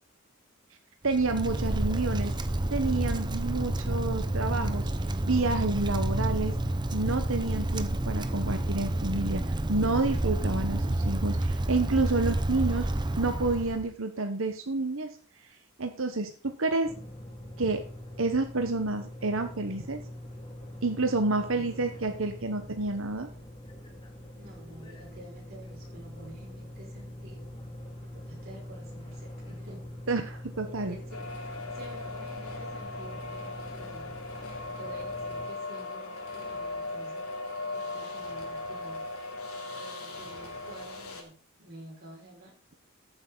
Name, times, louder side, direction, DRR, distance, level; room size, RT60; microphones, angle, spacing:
voice 1, 1.0-2.3 2.7-4.9 5.2-6.5 6.9-9.4 9.7-12.9 13.2-15.1 15.8-16.9 17.6-17.8 18.2-20.0 20.8-23.3 30.1-30.9, right 3 dB, 65° right, 6 dB, 1.1 m, -29 dB
Wind, 1.1-13.9, right 1 dB, 20° right, 0.8 m, -29 dB
sound 1, 16.8-35.5, left 1 dB, 25° left, 2.3 m, -44 dB
voice 2, 21.3-21.9 24.3-27.5 28.0-29.9 30.6-31.2 31.7-37.2 37.7-39.1 39.7-42.5, right 1 dB, 45° right, -2 dB, 5.6 m, -50 dB
sound 2, 31.1-41.2, left 2 dB, 90° left, 3.1 m, -38 dB
14.0 x 8.3 x 4.0 m, 0.38 s
head